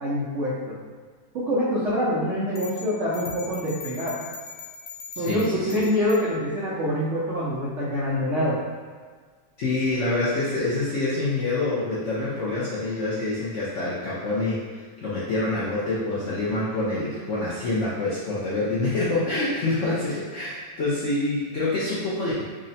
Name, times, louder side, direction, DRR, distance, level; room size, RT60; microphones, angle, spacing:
voice 1, 0.0-0.8 1.3-4.2 5.2-8.6, equal, 85° right, -8 dB, 0.6 m, -25 dB
sound 1, 2.6-6.3, left 4 dB, 70° left, 1.3 m, -40 dB
voice 2, 5.1-5.7 9.6-14.6 15.0-22.4, left 2 dB, 90° left, -9 dB, 0.6 m, -26 dB
3.7 x 2.1 x 4.0 m, 1.5 s
omnidirectional pair, 2.2 m